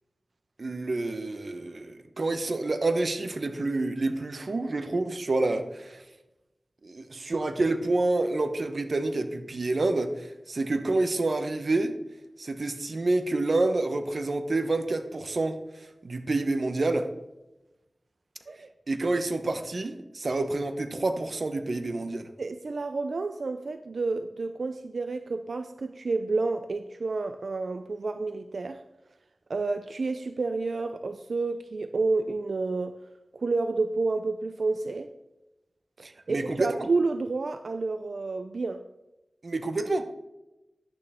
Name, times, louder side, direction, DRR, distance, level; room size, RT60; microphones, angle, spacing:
voice 1, 0.6-6.0 6.8-12.0 12.4-17.1 18.9-22.3 36.0-36.9 39.4-40.1, right 2 dB, 65° right, 8 dB, 1.0 m, -28 dB
voice 2, 22.4-28.8 29.5-33.0 33.3-35.1 36.3-38.8, right 3 dB, 80° right, 9 dB, 0.4 m, -30 dB
11.0 x 8.9 x 3.6 m, 1.0 s
wide cardioid pair, 65°, 0 cm